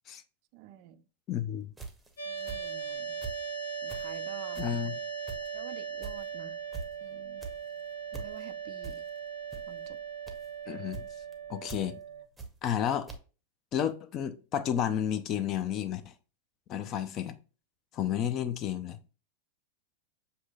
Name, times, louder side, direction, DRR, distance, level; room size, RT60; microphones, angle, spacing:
voice 1, 0.5-1.0 2.3-3.2 3.8-4.6 5.5-6.6 7.0-7.5 8.1-9.0 9.7-10.0, right 11 dB, 45° right, 0.4 m, -49 dB
voice 2, 1.3-1.7 4.6-5.0 10.7-11.1 11.5-11.9 12.6-13.1 13.7-16.1 16.7-17.4 17.9-19.1, left 9 dB, 35° left, 0.4 m, -31 dB
sound 1, 1.7-3.5 3.8-12.8 13.1-13.2, right 4 dB, 5° right, 0.8 m, -44 dB
sound 2, 2.2-12.2, right 6 dB, 60° left, 0.8 m, -39 dB
7.0 x 2.7 x 2.3 m
figure-of-eight pair, 90°, 0 cm